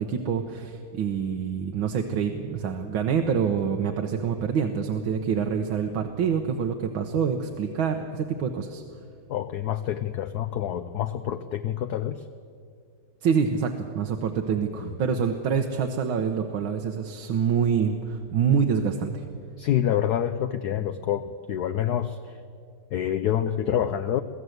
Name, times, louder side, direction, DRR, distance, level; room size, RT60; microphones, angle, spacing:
voice 1, 0.0-8.8 13.2-19.2, right 7 dB, 75° right, 4 dB, 1.8 m, -26 dB
voice 2, 9.3-12.3 14.8-14.9 19.6-22.4 22.9-24.2, left 10 dB, 65° left, 10 dB, 1.0 m, -27 dB
23.5 x 15.5 x 8.0 m, 2.3 s
omnidirectional pair, 2.2 m